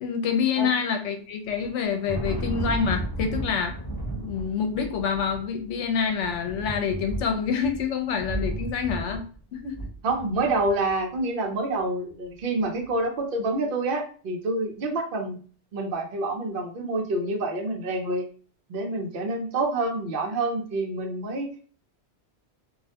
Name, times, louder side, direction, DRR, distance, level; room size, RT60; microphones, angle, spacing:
voice 1, 0.0-3.8 4.1-9.8, left 6 dB, 80° left, 4 dB, 0.9 m, -27 dB
Thunder, 1.5-10.9, right 1 dB, 20° left, 0.9 m, -34 dB
voice 2, 10.0-15.4 15.7-18.2 18.7-21.6, right 2 dB, 55° right, 3 dB, 0.7 m, -27 dB
2.4 x 2.1 x 2.7 m, 0.41 s
omnidirectional pair, 1.2 m